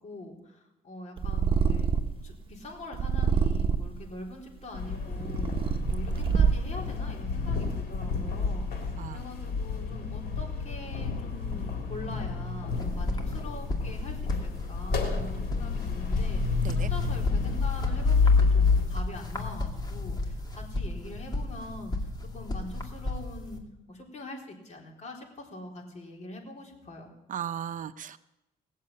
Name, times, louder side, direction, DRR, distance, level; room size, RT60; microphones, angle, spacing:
voice 1, 0.0-1.9 2.2-21.9 22.3-23.6 23.9-27.1, left 2 dB, 45° left, 0 dB, 4.0 m, -43 dB
Purr, 1.2-2.3 2.9-4.0 4.7-6.8, right 6 dB, 35° right, 1.2 m, -26 dB
sound 1, 4.7-18.8, left 4 dB, 80° left, 3.6 m, -29 dB
sound 2, 12.7-23.6, left 2 dB, 25° left, 2.3 m, -34 dB
voice 2, 27.3-28.2, right 9 dB, 55° right, 11 dB, 0.6 m, -36 dB
19.0 x 7.5 x 8.6 m, 0.92 s
cardioid pair, 105°, 16 cm